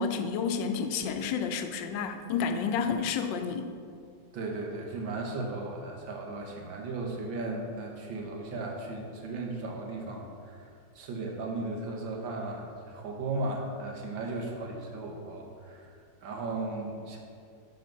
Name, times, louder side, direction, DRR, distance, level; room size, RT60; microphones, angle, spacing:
voice 1, 0.0-3.7, left 6 dB, 75° left, 7 dB, 1.3 m, -30 dB
voice 2, 4.3-15.9 16.2-17.2, right 2 dB, 80° right, 0 dB, 1.8 m, -36 dB
6.5 x 5.2 x 6.0 m, 2.3 s
omnidirectional pair, 2.0 m